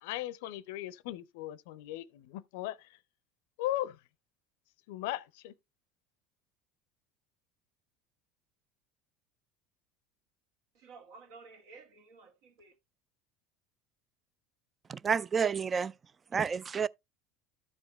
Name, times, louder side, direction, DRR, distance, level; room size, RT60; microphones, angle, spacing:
voice 1, 0.0-3.0 3.6-4.0 4.9-5.5, left 14 dB, 70° left, 0.5 m, -37 dB
voice 2, 10.7-12.7, right 4 dB, 65° right, 2.2 m, -53 dB
voice 3, 14.9-15.9 16.3-16.9, right 6 dB, 30° right, 0.4 m, -30 dB
12.5 x 4.9 x 3.2 m
hypercardioid pair, 75°, 0 cm